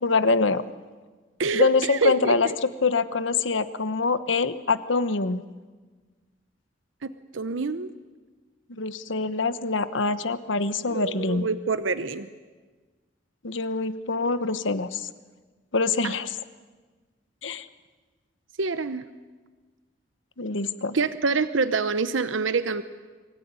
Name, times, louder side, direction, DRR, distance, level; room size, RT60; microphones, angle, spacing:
voice 1, 0.0-0.6 1.5-5.4 8.7-11.5 13.4-15.1 15.7-16.3 17.4-17.7 20.4-21.0, left 4 dB, 85° left, 13 dB, 1.1 m, -25 dB
voice 2, 1.4-2.5 7.0-7.9 10.9-12.3 16.0-16.1 18.6-19.0 20.9-22.8, right 4 dB, 90° right, 12 dB, 0.8 m, -26 dB
25.0 x 17.0 x 9.7 m, 1.4 s
head